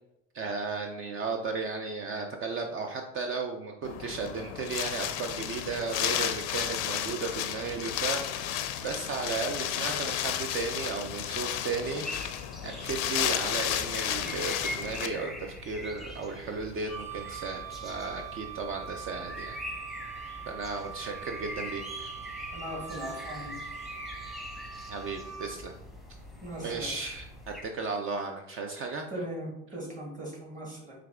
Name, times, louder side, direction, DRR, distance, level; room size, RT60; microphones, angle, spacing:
voice 1, 0.3-19.6 20.5-22.1 24.9-25.7 26.6-29.1, right 4 dB, 35° right, 4 dB, 0.5 m, -35 dB
Wind, 3.8-15.1, left 11 dB, 55° left, 0.5 m, -32 dB
sound 1, 12.0-27.6, left 1 dB, ahead, 0.9 m, -43 dB
Wind instrument woodwind instrument, 16.9-25.5, right 8 dB, 55° right, 1.4 m, -43 dB
voice 2, 22.5-23.6 26.4-26.9 29.1-30.9, equal, 20° right, -3 dB, 1.4 m, -39 dB
4.5 x 2.4 x 3.4 m, 0.86 s
hypercardioid pair, 75°, 37 cm